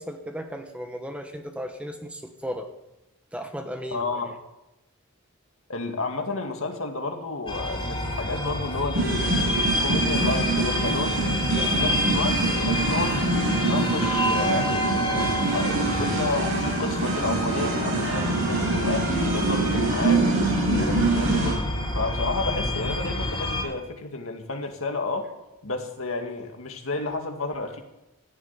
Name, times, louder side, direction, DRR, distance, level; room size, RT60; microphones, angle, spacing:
voice 1, 0.0-2.7 3.3-4.3 11.3-11.8, equal, 5° right, 5 dB, 1.2 m, -36 dB
voice 2, 3.9-4.4 5.7-11.2 11.5-25.3 25.6-27.8, left 3 dB, 70° left, 4 dB, 2.1 m, -31 dB
sound 1, 7.5-23.6, left 1 dB, 25° left, 3.2 m, -28 dB
sound 2, 8.9-21.5, right 2 dB, 70° right, 5.6 m, -25 dB
15.5 x 7.4 x 9.7 m, 0.93 s
head